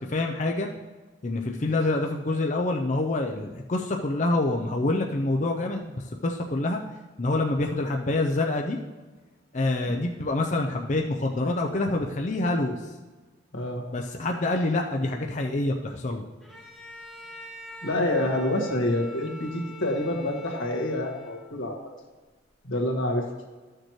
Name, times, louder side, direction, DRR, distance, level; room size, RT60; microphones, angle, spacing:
voice 1, 0.1-0.7 1.2-6.8 7.2-8.8 9.5-12.9 13.9-16.3, left 2 dB, 40° left, 2 dB, 0.5 m, -26 dB
voice 2, 13.5-13.9 17.8-21.8 22.6-23.3, left 1 dB, 85° left, 0 dB, 1.7 m, -27 dB
Bowed string instrument, 16.4-21.7, equal, ahead, 1.4 m, -44 dB
13.0 x 6.6 x 3.1 m, 1.3 s
head